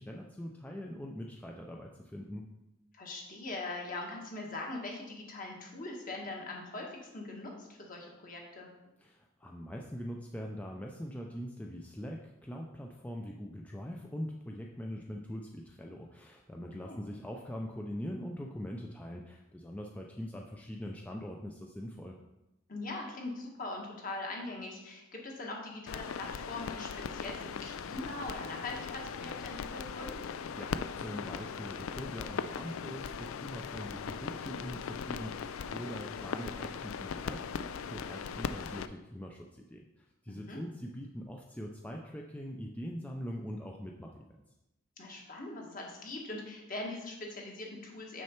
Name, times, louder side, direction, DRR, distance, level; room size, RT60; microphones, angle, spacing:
voice 1, 0.0-2.4 9.0-22.2 30.6-44.3, equal, 5° left, 0 dB, 0.4 m, -42 dB
voice 2, 2.9-8.7 16.6-17.0 22.7-30.2 40.3-40.6 45.0-48.2, left 2 dB, 40° left, 0 dB, 1.6 m, -41 dB
sound 1, 25.9-38.9, left 6 dB, 85° left, 0.4 m, -39 dB
6.6 x 6.2 x 4.5 m, 0.98 s
head